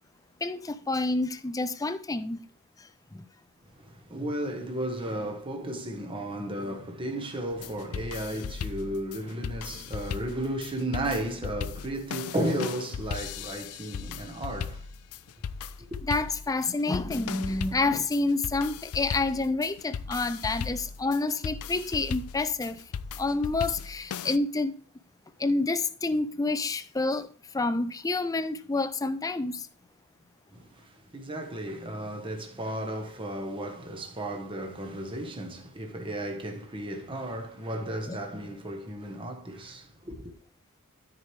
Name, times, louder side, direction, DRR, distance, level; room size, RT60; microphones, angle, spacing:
voice 1, 0.4-2.4 3.1-3.3 16.1-22.8 23.2-24.7 25.4-27.3 27.5-29.7 38.1-38.2, left 3 dB, 15° left, 0.4 m, -28 dB
voice 2, 3.8-14.9 15.9-16.0 30.5-40.3, right 1 dB, 25° right, 1.3 m, -34 dB
sound 1, 7.5-24.4, left 6 dB, 80° left, 0.4 m, -37 dB
13.0 x 4.7 x 3.3 m
head